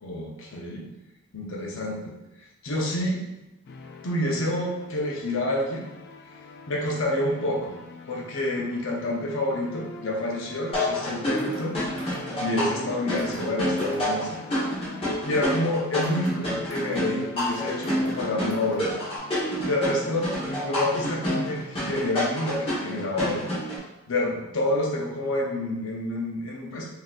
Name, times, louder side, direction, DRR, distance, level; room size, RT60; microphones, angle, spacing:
voice 1, 0.0-0.9 1.3-3.2 4.0-5.9 6.7-7.7 8.1-11.8 12.4-14.4 15.2-19.0 19.6-23.4 24.1-26.9, left 1 dB, 70° left, -1 dB, 0.7 m, -28 dB
sound 1, 3.7-23.3, left 3 dB, 50° left, 0.3 m, -44 dB
sound 2, 10.7-23.8, equal, 25° left, 1.1 m, -28 dB
sound 3, 11.4-11.7 12.0-12.3 13.2-13.5 13.8-14.1 16.0-16.4 16.7-17.1 17.4-18.2 18.5-18.9 19.2-19.3, right 1 dB, 60° right, 0.7 m, -47 dB
3.9 x 2.7 x 2.4 m, 0.99 s
head